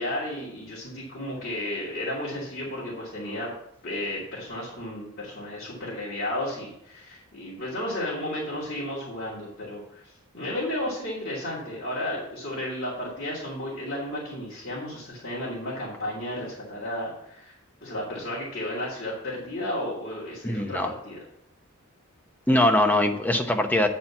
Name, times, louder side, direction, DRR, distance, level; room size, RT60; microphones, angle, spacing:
voice 1, 0.0-3.5 3.8-17.5 17.8-21.2, left 1 dB, 45° left, -7 dB, 2.6 m, -33 dB
voice 2, 20.4-20.9 22.5-23.9, left 1 dB, 10° left, 4 dB, 0.8 m, -22 dB
9.3 x 4.3 x 7.1 m, 0.76 s
head